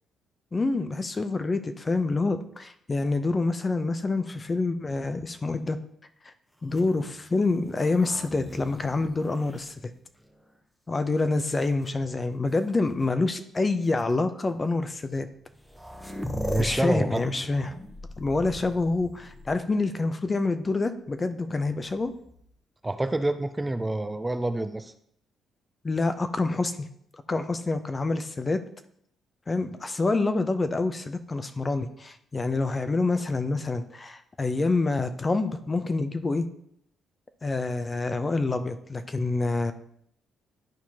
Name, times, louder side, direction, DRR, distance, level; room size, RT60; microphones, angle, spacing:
voice 1, 0.5-5.8 6.2-6.3 6.6-9.7 10.9-15.3 16.6-17.7 18.2-22.1 25.8-26.7 27.3-28.6 29.5-36.5 37.4-39.7, left 3 dB, 30° left, 9 dB, 0.7 m, -27 dB
sound 1, 6.6-10.5 11.2-11.9 13.0-13.1 13.8-14.0 15.2-15.3 15.4-19.9 21.8-22.5, left 1 dB, 5° left, 0.9 m, -40 dB
voice 2, 16.3-17.2 22.8-24.9, right 2 dB, 15° right, 9 dB, 0.5 m, -27 dB
11.5 x 4.4 x 2.9 m, 0.69 s
supercardioid pair, 70°, 0 cm